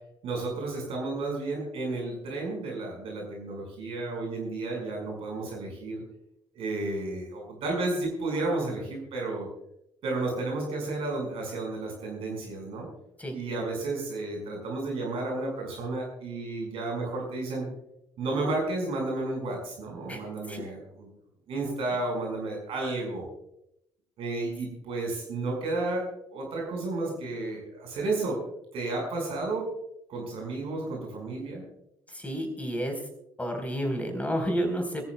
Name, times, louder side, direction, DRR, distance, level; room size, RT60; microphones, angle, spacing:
voice 1, 0.2-6.0 6.5-9.5 10.0-12.9 13.3-17.7 18.2-21.1 21.5-23.3 24.2-26.0 26.3-28.4 28.7-29.7 30.1-31.6, right 2 dB, 55° right, 0 dB, 5.6 m, -32 dB
voice 2, 32.1-33.0 33.4-35.0, equal, 10° left, 4 dB, 4.5 m, -30 dB
24.5 x 14.0 x 2.4 m, 0.80 s
figure-of-eight pair, 50°, 12 cm